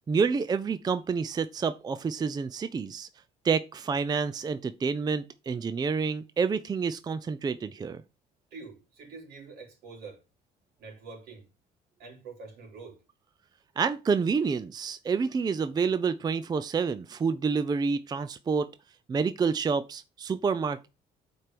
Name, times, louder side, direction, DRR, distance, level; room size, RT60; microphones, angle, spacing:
voice 1, 0.1-3.1 3.4-8.0 13.8-18.7 19.1-20.9, right 5 dB, 25° right, 0.5 m, -28 dB
voice 2, 8.5-10.2 10.8-11.4 12.0-13.0, right 4 dB, 75° right, 3.4 m, -45 dB
7.7 x 4.6 x 5.1 m
cardioid pair, 110°, 17 cm